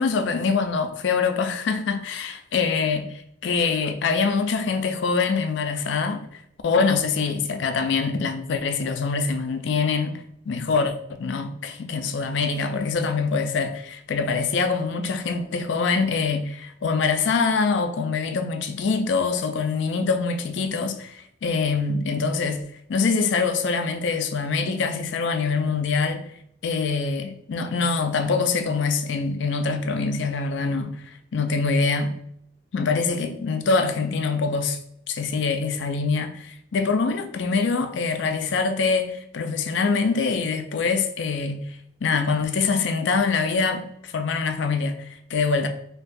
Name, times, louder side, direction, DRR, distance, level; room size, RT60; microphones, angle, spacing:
voice 1, 0.0-22.6 22.9-26.3 26.6-32.1 32.7-34.8 35.1-41.6 42.0-45.7, left 4 dB, 60° left, 0.4 m, -24 dB
4.3 x 2.3 x 2.6 m
head